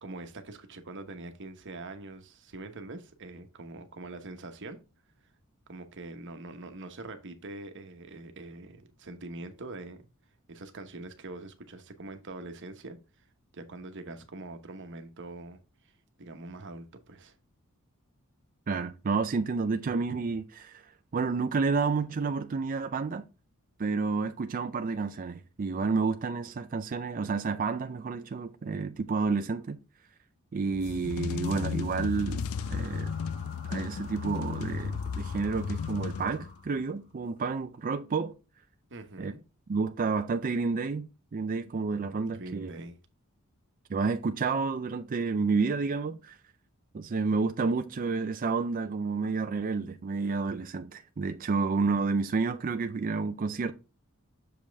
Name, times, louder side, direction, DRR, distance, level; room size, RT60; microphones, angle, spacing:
voice 1, 0.0-4.8 5.7-10.1 10.5-13.0 13.5-15.6 15.8-15.9 16.2-17.4 38.9-39.4 42.3-43.0, right 2 dB, 55° right, 1.0 m, -43 dB
voice 2, 18.7-20.8 21.1-23.2 23.8-29.8 30.5-33.1 33.7-38.3 39.2-39.3 39.7-42.7 43.9-46.4 46.9-53.7, right 4 dB, 40° right, 0.4 m, -30 dB
sound 1, 30.7-36.7, left 6 dB, 70° left, 0.4 m, -34 dB
sound 2, 32.0-37.1, left 1 dB, 50° left, 3.0 m, -51 dB
6.9 x 5.2 x 3.4 m
head